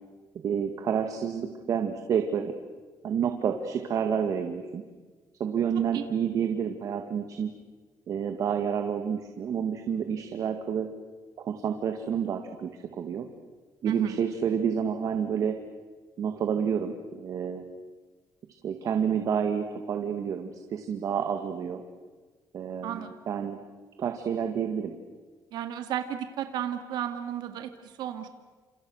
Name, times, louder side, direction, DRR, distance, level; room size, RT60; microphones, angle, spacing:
voice 1, 0.4-2.5 3.0-4.8 5.4-7.5 8.1-10.9 11.4-13.3 13.8-15.6 16.2-17.7 18.6-21.8 22.5-23.6 24.0-24.9, right 7 dB, 50° right, 6 dB, 2.0 m, -29 dB
voice 2, 13.9-14.2 22.8-23.1 25.5-28.3, right 10 dB, 75° right, 7 dB, 2.1 m, -33 dB
29.5 x 28.0 x 6.5 m, 1.4 s
cardioid pair, 155°, 7 cm